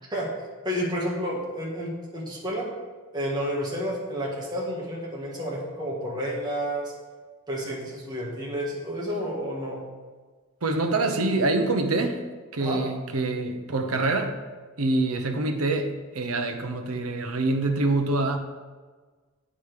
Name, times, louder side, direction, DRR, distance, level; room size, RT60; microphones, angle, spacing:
voice 1, 0.6-2.7 3.1-6.9 7.5-9.8 12.6-12.8, equal, 20° right, -4 dB, 1.6 m, -30 dB
voice 2, 10.6-12.3 12.5-14.4 14.8-18.4, right 2 dB, 80° right, 6 dB, 0.8 m, -25 dB
8.5 x 5.0 x 4.9 m, 1.4 s
head